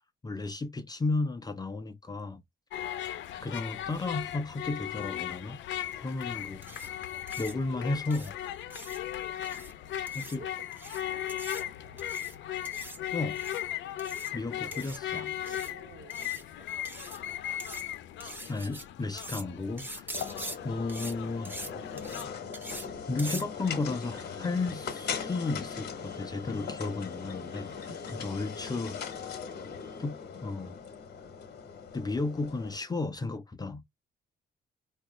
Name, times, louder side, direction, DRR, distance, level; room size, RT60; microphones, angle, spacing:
voice 1, 0.2-2.4 3.4-5.6 6.0-7.0 7.4-8.3 10.1-10.4 13.1-13.4 14.3-15.2 18.2-21.7 23.1-29.0 30.0-30.8 31.9-33.8, left 3 dB, 20° left, 0.5 m, -34 dB
sound 1, 2.7-22.4, left 11 dB, 85° left, 0.6 m, -38 dB
sound 2, 6.6-6.9 7.3-7.5 8.1-8.3 8.7-9.0 9.4-9.7 10.1-10.4 10.7-11.0 11.3-11.6 12.0-12.3 12.6-13.0 13.3-13.6 14.0-14.3 14.7-15.0 15.5-15.7 16.1-16.4 16.8-17.2 17.6-17.8 18.2-18.8 19.2-19.4 19.8-20.6 20.9-21.1 21.4-21.7 22.0-22.2 22.5-22.9 23.2-23.4, right 1 dB, 10° right, 0.9 m, -42 dB
voice 2, 10.0-10.7 11.0-12.1 14.6-16.7 29.3-30.0, right 4 dB, 50° right, 1.2 m, -53 dB
sound 3, 20.1-32.8, left 6 dB, 60° left, 1.0 m, -40 dB
4.5 x 2.4 x 3.0 m
cardioid pair, 130°, 19 cm